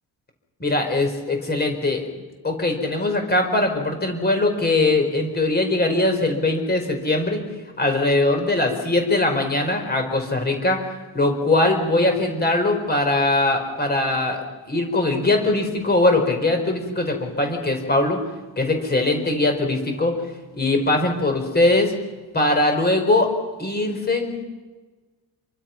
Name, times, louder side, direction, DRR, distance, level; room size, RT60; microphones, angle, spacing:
voice 1, 0.6-2.0 2.4-7.4 7.8-10.8 11.1-14.4 14.7-18.2 18.6-20.1 20.5-21.9 22.3-23.3 23.6-24.4, left 2 dB, 25° left, 4 dB, 5.0 m, -21 dB
27.5 x 24.0 x 6.0 m, 1.3 s
cardioid pair, 155°, 42 cm